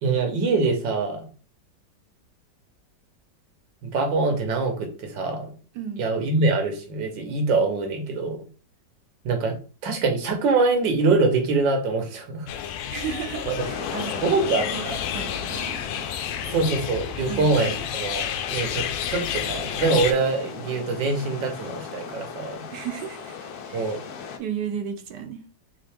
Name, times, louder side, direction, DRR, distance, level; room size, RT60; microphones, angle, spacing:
voice 1, 0.0-1.3 3.8-5.5 6.0-8.4 9.2-9.5 9.8-12.5 13.5-13.6 14.2-15.0 16.5-22.6 23.7-24.0, right 3 dB, 90° right, 4 dB, 1.7 m, -24 dB
sound 1, 12.5-20.1, left 9 dB, 90° left, 1.3 m, -31 dB
voice 2, 12.9-15.8 17.3-17.8 22.7-24.0 24.4-25.4, right 7 dB, 75° right, 6 dB, 1.2 m, -34 dB
sound 2, 13.6-24.4, left 6 dB, 70° left, 1.1 m, -37 dB
3.7 x 3.6 x 3.4 m, 0.37 s
omnidirectional pair, 1.9 m